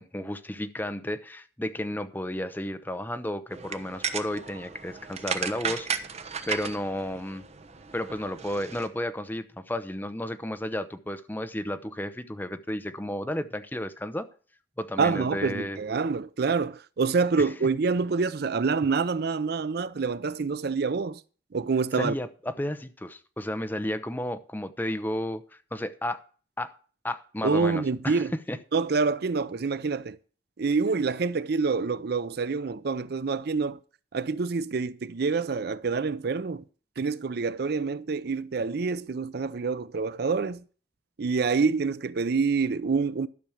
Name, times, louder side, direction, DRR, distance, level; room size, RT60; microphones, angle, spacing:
voice 1, 0.0-6.1 6.5-7.4 7.9-14.3 14.8-15.8 17.4-17.5 22.0-25.4 25.7-26.2 26.6-26.7 27.0-28.6, left 1 dB, 10° left, 0.7 m, -32 dB
sound 1, 3.5-8.9, right 6 dB, 35° right, 1.0 m, -35 dB
voice 2, 15.0-21.2 21.5-22.1 27.4-28.3 28.7-30.2 30.6-33.8 34.1-36.6 37.0-40.6 41.2-43.3, right 4 dB, 60° right, 0.5 m, -27 dB
12.0 x 6.2 x 7.1 m
head